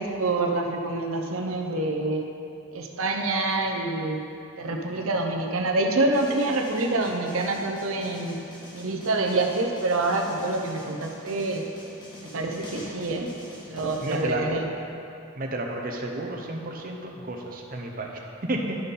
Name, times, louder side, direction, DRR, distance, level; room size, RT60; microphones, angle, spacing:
voice 1, 0.0-2.3 2.7-4.2 4.6-8.4 8.7-11.6 12.2-13.3 13.7-14.7, right 2 dB, 70° right, 2 dB, 0.7 m, -26 dB
sound 1, 6.1-14.2, left 1 dB, 20° left, 1.3 m, -45 dB
voice 2, 14.0-14.5 15.4-18.7, right 2 dB, 40° right, 1 dB, 0.9 m, -32 dB
11.5 x 5.3 x 4.2 m, 2.7 s
head